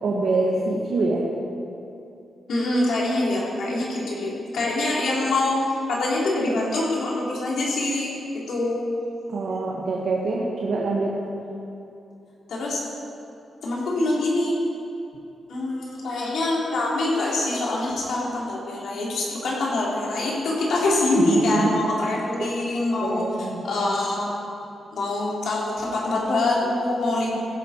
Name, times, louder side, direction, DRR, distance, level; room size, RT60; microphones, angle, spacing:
voice 1, 0.0-1.2 9.3-11.2 21.2-21.7 22.4-22.5 23.0-23.6, right 3 dB, 55° right, -3 dB, 1.4 m, -25 dB
voice 2, 2.5-5.6 5.9-8.1 8.5-8.8 12.5-12.8 13.6-14.6 15.5-24.3 24.9-27.3, left 2 dB, 70° left, -5 dB, 3.8 m, -24 dB
16.0 x 11.0 x 4.5 m, 2.8 s
wide cardioid pair, 180°, 0 cm